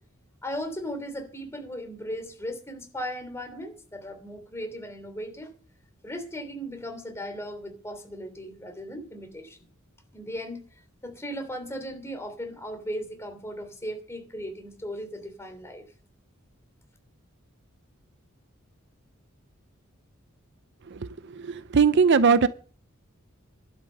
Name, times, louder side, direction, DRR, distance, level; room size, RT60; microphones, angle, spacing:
voice 1, 0.4-5.5 6.0-9.6 10.1-10.6 11.0-15.9, equal, 15° left, 3.1 m, -37 dB
voice 2, 20.9-22.5, right 5 dB, 55° right, 0.6 m, -21 dB
11.5 x 8.9 x 6.5 m
head